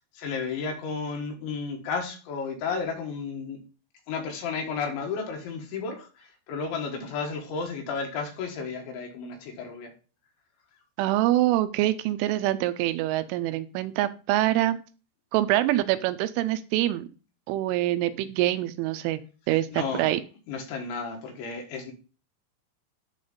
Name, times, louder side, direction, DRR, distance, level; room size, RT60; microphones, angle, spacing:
voice 1, 0.1-3.6 4.1-9.9 19.7-20.1 20.5-21.9, left 5 dB, 70° left, 3 dB, 3.6 m, -33 dB
voice 2, 11.0-14.8 15.3-17.0 17.5-19.2 19.5-20.2, right 15 dB, 80° right, 11 dB, 2.9 m, -25 dB
11.0 x 4.0 x 5.1 m, 0.34 s
omnidirectional pair, 5.8 m